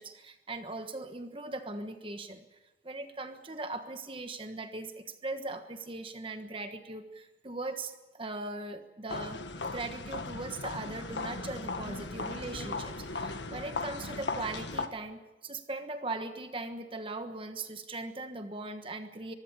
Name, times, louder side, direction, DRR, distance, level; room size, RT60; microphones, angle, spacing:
voice 1, 0.0-2.4 2.8-9.4 9.7-19.3, right 2 dB, 30° right, 7 dB, 1.3 m, -39 dB
sound 1, 9.1-14.9, left 3 dB, 80° left, 1.7 m, -37 dB
24.0 x 15.5 x 8.8 m, 1.1 s
head